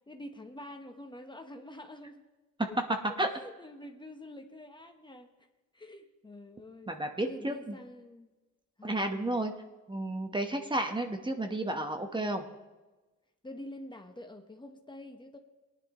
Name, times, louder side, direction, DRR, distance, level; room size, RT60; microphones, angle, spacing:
voice 1, 0.1-2.2 2.7-2.8 3.3-5.3 5.7-6.9 7.2-8.3 8.8-9.1 12.1-12.4 13.4-15.4, left 1 dB, 15° left, 5 dB, 1.0 m, -47 dB
voice 2, 6.9-7.8 8.8-9.5 9.9-12.4, right 1 dB, 15° right, 5 dB, 1.0 m, -32 dB
18.5 x 10.5 x 3.0 m, 1.2 s
cardioid pair, 90°, 30 cm